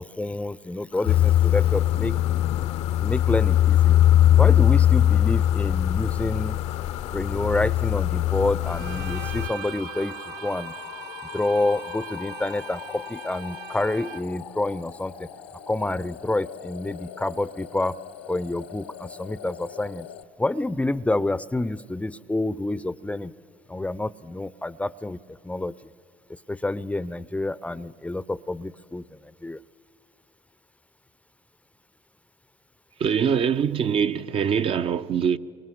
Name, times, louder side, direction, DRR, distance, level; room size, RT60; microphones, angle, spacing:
voice 1, 0.0-2.2 3.0-4.0 4.4-6.6 7.1-10.2 10.4-10.7 11.3-15.1 15.7-17.9 18.3-20.1 20.4-23.3 23.7-25.2 25.4-25.7 26.5-29.0 29.4-29.6, left 2 dB, 10° left, 0.5 m, -28 dB
sound 1, 0.9-20.2, left 11 dB, 90° left, 1.0 m, -41 dB
sound 2, 1.1-9.5, left 11 dB, 55° left, 0.6 m, -21 dB
Bowed string instrument, 8.6-14.5, right 8 dB, 75° right, 0.9 m, -40 dB
voice 2, 33.0-35.4, right 7 dB, 45° right, 0.6 m, -23 dB
29.5 x 25.0 x 7.8 m
supercardioid pair, 75°, 13 cm